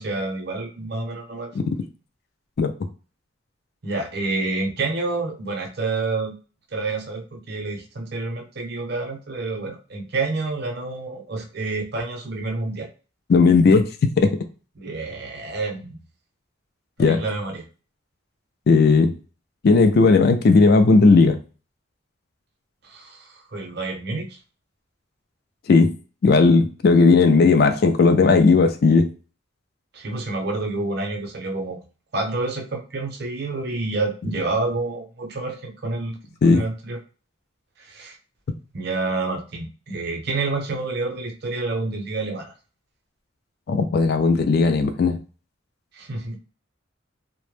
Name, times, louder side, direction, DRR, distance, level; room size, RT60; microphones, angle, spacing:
voice 1, 0.0-1.7 3.8-6.3 6.7-12.9 14.8-16.0 17.0-17.6 22.8-24.4 29.9-31.8 32.1-36.2 36.5-37.0 37.8-38.2 38.7-42.5 45.9-46.3, right 3 dB, 55° right, 1 dB, 0.6 m, -28 dB
voice 2, 13.3-13.9 14.2-14.3 17.0-17.2 18.7-19.1 19.6-21.4 25.7-25.9 26.2-29.1 36.4-36.6 43.7-45.2, left 4 dB, 50° left, 8 dB, 0.3 m, -16 dB
2.0 x 2.0 x 3.1 m, 0.36 s
head